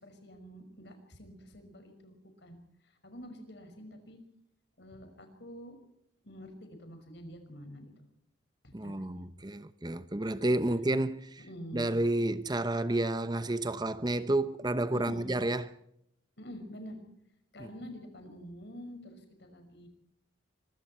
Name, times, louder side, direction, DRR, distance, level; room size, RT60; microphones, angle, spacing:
voice 1, 0.0-4.2 4.8-5.8 6.2-8.1 8.6-9.2 11.5-11.9 14.9-15.3 16.4-17.0 17.5-19.9, equal, 60° left, 5.9 m, -47 dB
voice 2, 8.7-11.4 11.7-15.7 17.6-17.7, right 1 dB, 20° right, 0.8 m, -30 dB
25.5 x 23.0 x 4.4 m
head